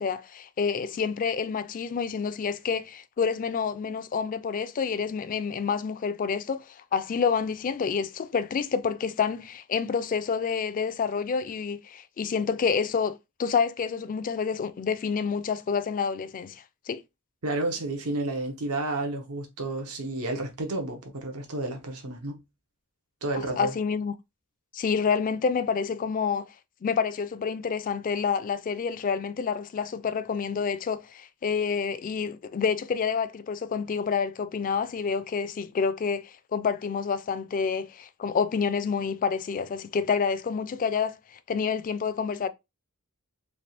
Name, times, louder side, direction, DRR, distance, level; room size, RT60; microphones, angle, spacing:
voice 1, 0.0-17.0 23.3-24.1 24.7-26.5 26.8-41.2 41.5-42.5, left 6 dB, 35° left, 0.3 m, -28 dB
voice 2, 17.4-22.4 23.2-23.7, right 2 dB, 80° right, 0.9 m, -31 dB
3.4 x 2.3 x 4.2 m
head